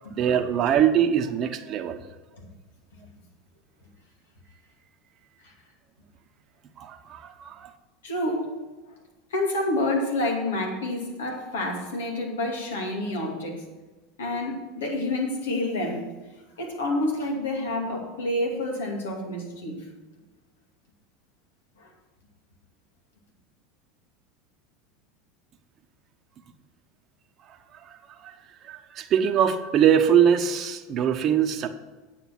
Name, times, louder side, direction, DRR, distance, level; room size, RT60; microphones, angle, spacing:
voice 1, 0.1-2.0 6.8-7.7 27.8-28.3 28.6-31.7, right 9 dB, 45° right, 5 dB, 1.0 m, -23 dB
voice 2, 8.0-8.5 9.3-13.6 14.2-16.1 16.6-19.8 21.8-21.9, left 1 dB, 85° left, 1 dB, 2.6 m, -28 dB
9.2 x 8.0 x 6.0 m, 1.2 s
hypercardioid pair, 85°, 0 cm